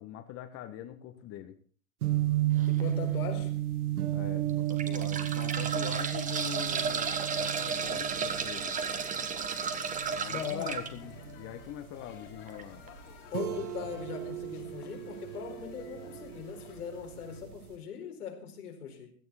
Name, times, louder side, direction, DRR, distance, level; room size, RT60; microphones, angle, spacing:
voice 1, 0.0-1.6 4.1-8.7 10.1-12.8, left 12 dB, 30° left, 1.5 m, -43 dB
sound 1, 2.0-17.7, right 14 dB, 75° right, 1.7 m, -34 dB
voice 2, 2.6-3.5 10.3-10.8 13.3-19.1, left 7 dB, 85° left, 4.6 m, -39 dB
sound 2, 2.6-2.8 3.5-3.6 4.5-10.9 12.5-12.6 12.9-13.0, right 6 dB, 15° right, 1.6 m, -33 dB
sound 3, 6.8-17.4, left 10 dB, 55° left, 3.3 m, -53 dB
17.0 x 12.0 x 4.2 m
hypercardioid pair, 135°, 44 cm